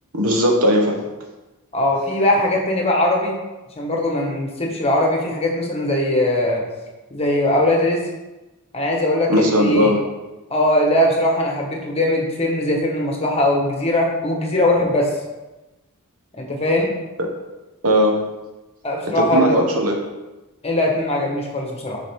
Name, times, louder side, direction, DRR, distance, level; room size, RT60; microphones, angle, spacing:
voice 1, 0.1-1.0 9.3-10.0 17.2-17.3 17.8-18.2 19.1-20.0, equal, 70° right, 1 dB, 1.2 m, -18 dB
voice 2, 1.7-3.3 3.8-6.6 7.1-8.0 8.7-9.9 10.5-15.1 16.3-16.9 18.8-19.5 20.6-22.0, left 1 dB, 25° left, 0 dB, 1.3 m, -20 dB
7.5 x 4.9 x 3.6 m, 1.1 s
head